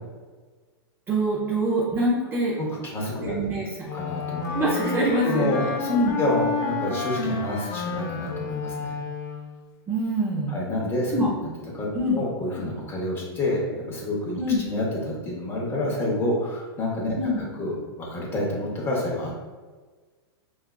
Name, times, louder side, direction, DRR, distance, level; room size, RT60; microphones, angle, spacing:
voice 1, 1.1-2.5 3.2-3.7 4.5-5.5 5.9-6.2 9.9-10.6 11.1-11.3 11.9-12.2 14.4-14.7 17.2-17.4, right 1 dB, 15° right, -5 dB, 0.5 m, -24 dB
voice 2, 2.6-3.6 3.9-4.9 5.2-9.0 10.5-11.5 11.7-19.4, left 1 dB, 20° left, -3 dB, 0.7 m, -29 dB
Wind instrument woodwind instrument, 3.8-9.6, left 4 dB, 50° left, 0.5 m, -30 dB
4.4 x 2.3 x 2.2 m, 1.4 s
hypercardioid pair, 150°, 13 cm